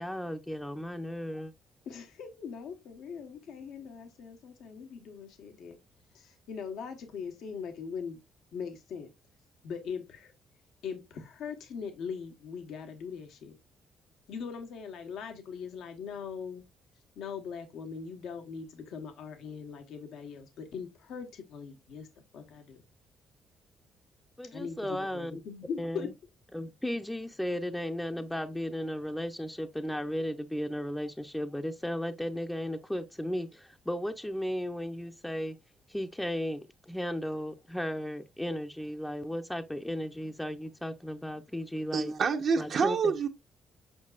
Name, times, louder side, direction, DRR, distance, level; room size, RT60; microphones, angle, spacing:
voice 1, 0.0-1.5 24.4-25.3 25.8-26.1 26.5-35.6 35.9-42.1 42.6-43.1, equal, 5° left, 0.6 m, -35 dB
voice 2, 1.8-5.8 6.1-8.2 8.5-9.1 9.6-10.3 10.8-13.6 14.3-16.6 17.2-22.1 22.3-22.8 24.4-26.1, left 6 dB, 80° left, 1.2 m, -41 dB
voice 3, 41.9-43.3, right 5 dB, 60° right, 0.9 m, -27 dB
7.5 x 5.6 x 2.4 m
cardioid pair, 90°, 0 cm